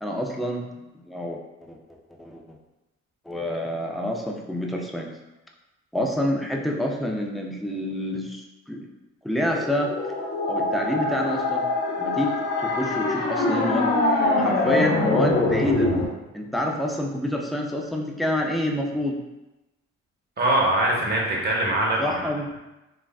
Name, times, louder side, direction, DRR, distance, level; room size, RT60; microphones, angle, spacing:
voice 1, 0.0-0.7 1.1-1.8 2.2-2.4 3.3-5.1 5.9-8.8 9.2-9.9 10.5-11.7 12.0-13.9 14.4-15.9 16.3-19.2 22.0-22.6, left 1 dB, ahead, 0 dB, 0.3 m, -27 dB
sound 1, 9.5-16.0, left 2 dB, 35° left, 0.7 m, -24 dB
voice 2, 20.4-22.2, right 1 dB, 35° right, -3 dB, 0.9 m, -22 dB
3.2 x 2.4 x 2.3 m, 1.0 s
cardioid pair, 90°, 30 cm